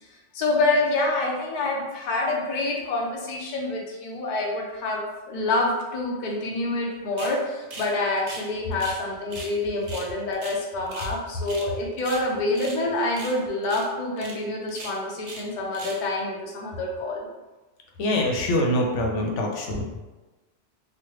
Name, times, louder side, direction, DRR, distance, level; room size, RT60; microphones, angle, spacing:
voice 1, 0.3-17.3, left 2 dB, 50° left, -1 dB, 0.6 m, -27 dB
sound 1, 7.2-7.4 7.7-7.9 8.2-9.0 9.3-9.5 9.8-11.1 11.4-11.7 12.0-12.8 13.1-13.4 13.6-13.9 14.2-14.3 14.7-15.5 15.7-16.0, right 2 dB, 60° right, 0.7 m, -39 dB
voice 2, 18.0-20.1, left 1 dB, 90° left, 0 dB, 0.9 m, -24 dB
3.1 x 2.1 x 3.0 m, 1.1 s
omnidirectional pair, 1.2 m